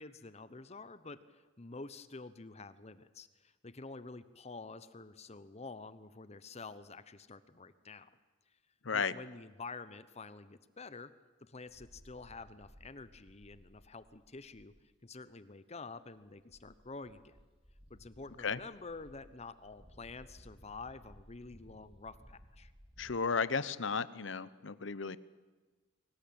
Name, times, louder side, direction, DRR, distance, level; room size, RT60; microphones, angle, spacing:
voice 1, 0.0-8.1 8.9-11.1 11.4-14.7 15.0-17.4 17.9-22.7, left 3 dB, 35° left, 14 dB, 1.0 m, -48 dB
sound 1, 11.7-14.8 15.1-15.2 16.1-16.2 16.5-23.1, equal, 30° right, 3.8 m, -59 dB
voice 2, 23.0-25.2, left 5 dB, 70° left, 16 dB, 0.9 m, -34 dB
23.5 x 18.5 x 8.8 m, 1.3 s
head